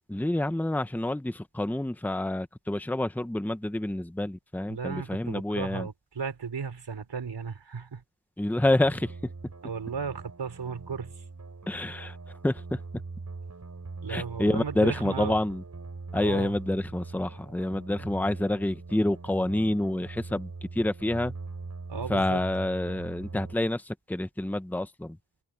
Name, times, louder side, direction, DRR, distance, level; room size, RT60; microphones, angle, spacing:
voice 1, 0.1-5.9 8.4-9.1 11.7-12.2 12.4-12.8 14.1-15.6 16.1-21.3 22.1-25.2, left 1 dB, 5° left, 0.9 m, -28 dB
voice 2, 4.7-8.0 9.6-11.1 14.0-15.3 16.1-16.5 21.9-22.4, right 5 dB, 85° right, 4.6 m, -35 dB
sound 1, 8.6-23.6, right 3 dB, 40° right, 4.6 m, -41 dB
wide cardioid pair, 110°, 42 cm